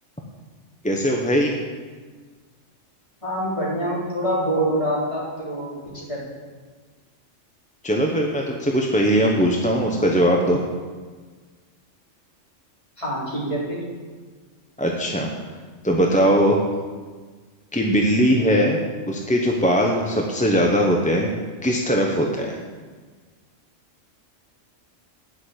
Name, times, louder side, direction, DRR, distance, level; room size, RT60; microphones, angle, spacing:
voice 1, 0.8-1.5 7.8-10.6 14.8-15.3 15.8-16.6 17.7-18.8 19.1-21.3 21.6-22.6, equal, 5° left, 0 dB, 0.7 m, -20 dB
voice 2, 3.2-5.7 6.1-6.2 13.0-13.8, right 1 dB, 25° left, -8 dB, 3.9 m, -25 dB
10.5 x 6.4 x 8.0 m, 1.5 s
omnidirectional pair, 1.3 m